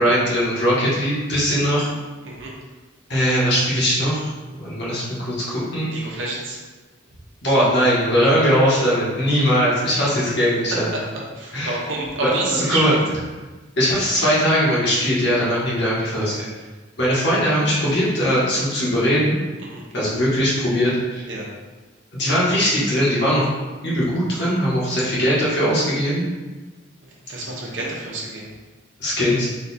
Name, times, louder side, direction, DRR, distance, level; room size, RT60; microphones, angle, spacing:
voice 1, 0.0-1.9 3.1-4.3 4.6-5.9 7.4-10.9 11.5-11.8 12.2-12.9 13.8-16.4 17.0-19.4 19.9-21.2 22.1-23.5 23.8-26.2 29.0-29.5, equal, 60° left, -7 dB, 1.3 m, -20 dB
voice 2, 5.9-6.6 10.0-10.2 10.7-10.8 11.4-13.0 16.2-16.5 19.7-19.8 21.3-21.5 27.2-28.5, right 2 dB, 75° right, -3 dB, 0.8 m, -28 dB
4.0 x 2.4 x 4.1 m, 1.2 s
head